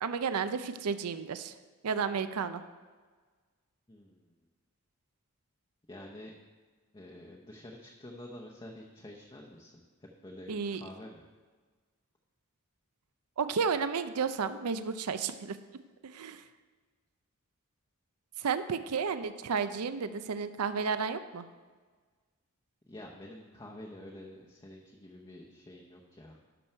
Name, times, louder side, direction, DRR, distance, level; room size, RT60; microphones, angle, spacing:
voice 1, 0.0-1.5 1.8-2.6 10.5-10.8 13.4-15.6 16.0-16.4 18.4-21.4, right 6 dB, 80° right, 11 dB, 0.5 m, -32 dB
voice 2, 3.9-4.3 5.9-6.3 6.9-11.2 22.9-26.4, left 1 dB, 20° left, -1 dB, 0.8 m, -48 dB
11.0 x 6.3 x 4.5 m, 1.4 s
head